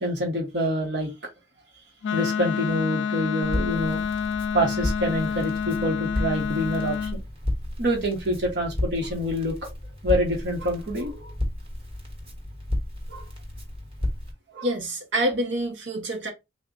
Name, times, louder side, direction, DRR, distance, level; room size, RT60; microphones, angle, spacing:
voice 1, 0.0-1.1 2.1-4.0 4.5-7.2 7.8-9.5 9.8-11.3 13.1-13.2 14.5-14.7, equal, 65° right, 1.2 m, -26 dB
Wind instrument woodwind instrument, 2.0-7.2, left 7 dB, 75° left, 0.3 m, -28 dB
Crackle, 3.4-14.3, left 1 dB, 30° right, 1.2 m, -33 dB
voice 2, 14.6-16.3, right 1 dB, 85° right, 1.1 m, -27 dB
3.6 x 2.4 x 3.8 m
head